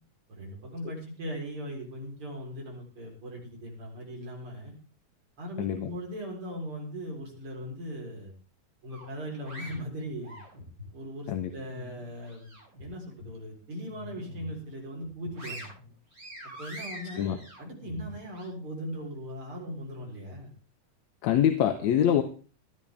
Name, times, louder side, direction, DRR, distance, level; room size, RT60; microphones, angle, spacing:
voice 1, 0.3-4.8 5.4-8.3 8.8-10.4 10.9-15.7 16.6-20.5, equal, 45° right, -1 dB, 5.0 m, -39 dB
voice 2, 5.6-5.9 11.3-11.5 17.2-17.4 21.2-22.2, left 10 dB, 75° left, 8 dB, 2.2 m, -24 dB
sound 1, 8.9-10.9 11.4-12.8 13.2-13.4 13.8-14.6 15.0-18.5, equal, 30° right, 8.6 m, -45 dB
17.5 x 13.0 x 3.5 m, 0.36 s
omnidirectional pair, 3.3 m